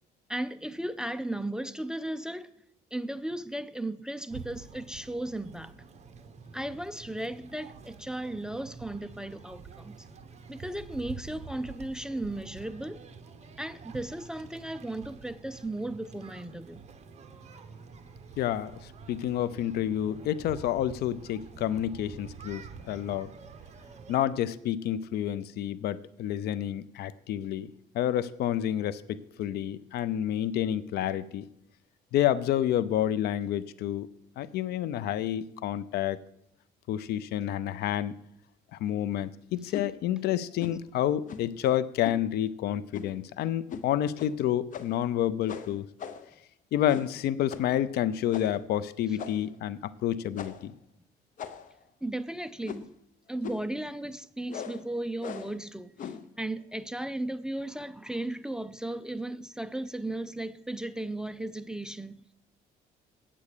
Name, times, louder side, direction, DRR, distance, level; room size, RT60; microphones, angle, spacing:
voice 1, 0.3-2.5 2.9-5.7 6.5-10.1 10.5-13.0 13.6-16.8 52.0-52.9 53.3-56.1 56.4-62.2, right 1 dB, 5° right, 0.4 m, -35 dB
sound 1, 4.3-24.2, right 5 dB, 40° right, 1.1 m, -47 dB
voice 2, 18.4-23.3 24.1-31.5 32.1-34.1 34.4-36.2 36.9-38.2 38.7-45.9 46.7-50.7, left 11 dB, 70° left, 0.6 m, -29 dB
sound 2, 39.7-39.9 40.6-40.8 41.3-41.6 42.0-42.2 42.9-43.2 43.7-43.9 44.2-44.3 44.7-45.1 45.5-46.3 46.8-47.2 47.5-47.7 48.3-48.6 49.2-49.6 50.3-50.7 51.4-51.8 52.6-53.0 53.4-53.7 54.5-54.8 55.2-55.6 56.0-56.3, left 7 dB, 50° left, 0.8 m, -40 dB
8.6 x 8.4 x 6.7 m
cardioid pair, 110°, 17 cm